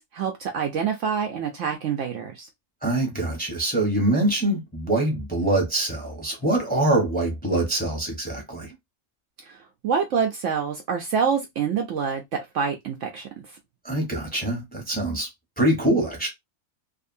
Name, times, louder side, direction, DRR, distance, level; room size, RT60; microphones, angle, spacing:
voice 1, 0.0-2.5 9.5-13.3, right 6 dB, 65° right, 0.8 m, -26 dB
voice 2, 2.8-8.7 13.8-15.3 15.6-16.3, right 1 dB, 5° left, 0.8 m, -24 dB
2.6 x 2.6 x 2.6 m
omnidirectional pair, 1.6 m